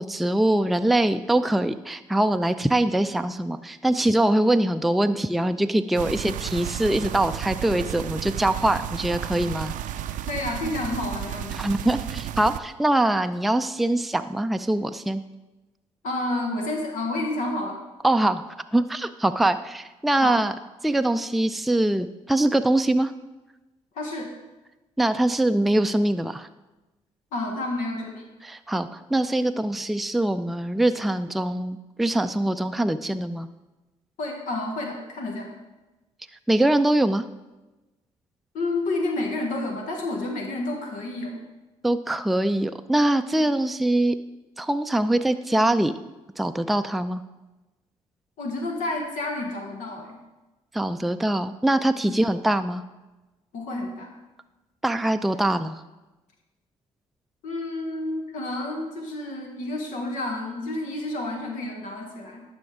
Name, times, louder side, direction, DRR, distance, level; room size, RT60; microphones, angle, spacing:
voice 1, 0.0-9.7 11.6-15.2 18.0-18.4 18.7-20.5 20.8-23.1 25.0-26.5 28.4-33.5 36.5-37.2 41.8-44.2 44.6-45.9 46.4-47.2 50.7-52.8 54.8-55.8, right 1 dB, ahead, 9 dB, 0.4 m, -23 dB
sound 1, 5.9-12.6, right 11 dB, 70° right, 0.4 m, -33 dB
voice 2, 10.3-11.5 16.0-17.8 20.2-20.4 23.9-24.3 27.3-28.3 34.2-35.5 38.5-41.4 48.4-50.2 53.5-54.1 57.4-62.4, left 2 dB, 75° left, 2 dB, 1.2 m, -30 dB
11.5 x 5.2 x 3.6 m, 1.1 s
supercardioid pair, 55°, 14 cm